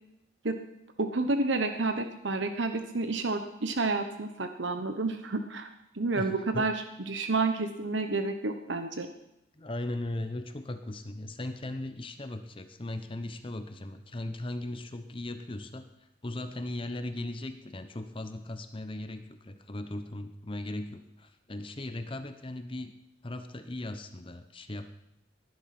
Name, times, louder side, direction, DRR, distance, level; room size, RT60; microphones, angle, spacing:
voice 1, 1.0-5.7 5.9-9.1, right 3 dB, 65° right, 7 dB, 1.1 m, -30 dB
voice 2, 6.1-6.7 9.5-22.9 23.2-24.9, left 1 dB, 25° left, 8 dB, 0.9 m, -38 dB
20.0 x 11.0 x 6.0 m, 0.85 s
head